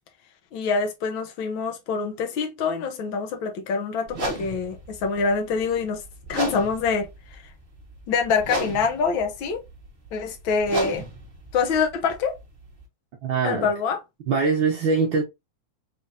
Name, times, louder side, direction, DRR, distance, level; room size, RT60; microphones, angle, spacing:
voice 1, 0.5-6.0 6.3-7.4 8.1-9.6 10.1-11.0 11.5-12.4 13.4-14.0, left 5 dB, 70° left, 1.1 m, -25 dB
sound 1, 4.1-12.8, right 2 dB, 85° right, 0.5 m, -35 dB
voice 2, 13.2-13.7 14.3-15.2, right 4 dB, 70° right, 1.1 m, -22 dB
5.0 x 3.5 x 2.6 m
omnidirectional pair, 3.4 m